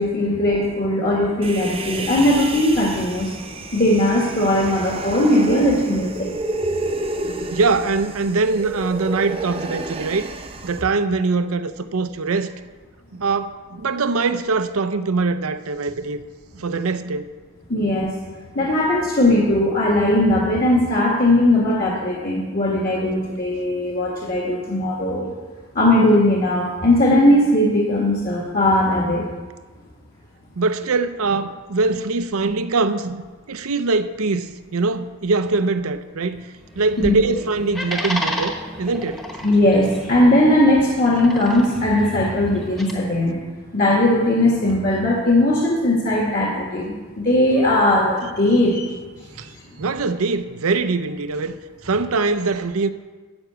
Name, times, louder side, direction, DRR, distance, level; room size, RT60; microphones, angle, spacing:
voice 1, 0.0-3.3 3.7-6.3 17.7-18.1 18.6-25.3 25.8-29.2 37.0-37.2 39.4-43.4 43.7-48.9, left 1 dB, 40° left, 1.7 m, -18 dB
Human voice, 1.4-10.8, right 2 dB, 25° right, 0.7 m, -30 dB
voice 2, 7.3-10.3 10.6-12.5 13.1-16.2 16.5-17.3 18.6-18.7 30.6-33.2 33.5-36.5 36.7-39.2 49.4-49.5 49.8-52.9, right 3 dB, 75° right, 0.7 m, -22 dB
sound 1, 36.6-42.9, equal, ahead, 1.0 m, -32 dB
12.5 x 6.0 x 8.0 m
head